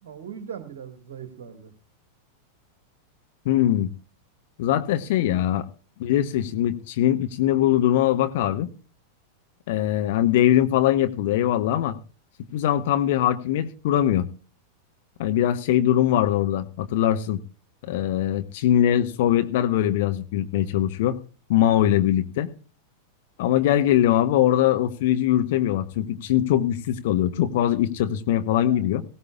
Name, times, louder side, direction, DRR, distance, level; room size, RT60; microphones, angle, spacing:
voice 1, 0.0-1.7 5.4-5.5 28.6-28.9, right 8 dB, 55° right, 7 dB, 1.8 m, -39 dB
voice 2, 3.4-3.9 4.6-5.6 6.0-8.7 9.7-12.0 12.5-14.3 15.2-17.4 17.9-21.2 21.5-22.5 23.4-29.0, left 12 dB, 50° left, 9 dB, 1.0 m, -22 dB
19.5 x 17.0 x 2.4 m, 0.35 s
figure-of-eight pair, 90°, 0 cm